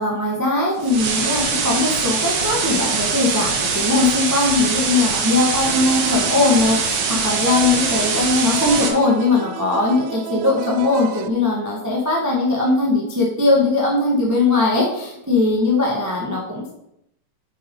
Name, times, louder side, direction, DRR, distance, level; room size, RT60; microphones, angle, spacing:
voice 1, 0.0-16.7, left 3 dB, 10° right, -3 dB, 0.8 m, -20 dB
sound 1, 0.8-8.9, right 5 dB, 60° right, 1.2 m, -22 dB
sound 2, 5.6-11.3, right 10 dB, 85° right, 1.9 m, -34 dB
8.8 x 7.8 x 3.9 m, 0.79 s
omnidirectional pair, 3.3 m